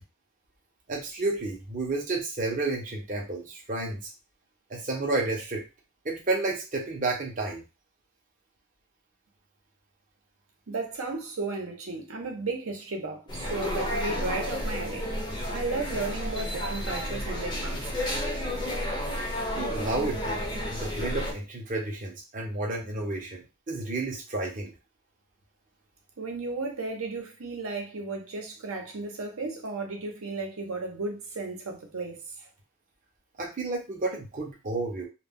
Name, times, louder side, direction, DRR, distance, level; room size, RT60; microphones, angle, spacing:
voice 1, 0.9-4.0 4.7-5.6 6.0-7.6 19.6-20.4 20.7-23.4 23.7-24.7 33.4-35.1, right 2 dB, 40° right, 0.5 m, -31 dB
voice 2, 10.7-15.1 15.5-18.2 26.2-32.5, right 3 dB, 90° right, 0.7 m, -34 dB
sound 1, 13.3-21.3, equal, 20° left, 0.5 m, -31 dB
2.2 x 2.1 x 3.4 m
head